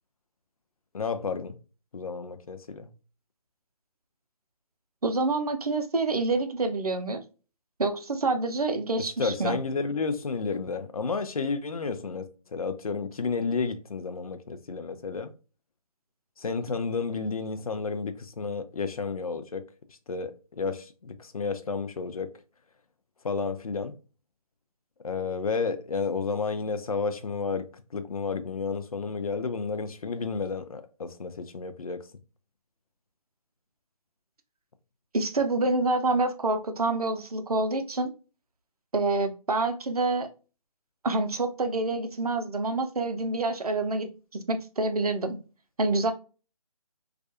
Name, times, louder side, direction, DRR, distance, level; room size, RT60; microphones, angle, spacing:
voice 1, 0.9-1.6 1.9-2.9 9.0-15.3 16.4-19.6 20.1-22.3 23.2-23.9 25.0-27.7 27.9-32.1, left 4 dB, 70° left, 0.5 m, -31 dB
voice 2, 5.0-7.2 7.8-9.6 35.1-38.1 38.9-40.3 41.0-45.4 45.8-46.1, right 3 dB, 75° right, 0.5 m, -27 dB
2.4 x 2.2 x 2.6 m
figure-of-eight pair, 145°, 19 cm